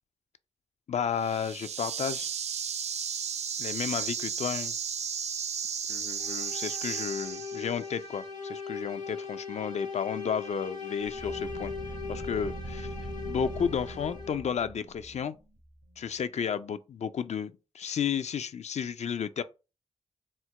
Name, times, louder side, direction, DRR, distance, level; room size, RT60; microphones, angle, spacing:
voice 1, 0.9-2.3 3.6-4.7 5.9-11.7 12.1-12.9 13.2-15.3 16.0-19.4, left 7 dB, 65° left, 0.4 m, -32 dB
sound 1, 1.1-7.9, right 7 dB, 60° right, 0.4 m, -34 dB
sound 2, 6.2-14.6, left 5 dB, 85° left, 1.1 m, -39 dB
sound 3, 11.0-16.4, right 1 dB, 90° right, 1.6 m, -42 dB
4.3 x 2.1 x 4.6 m
cardioid pair, 70°, 13 cm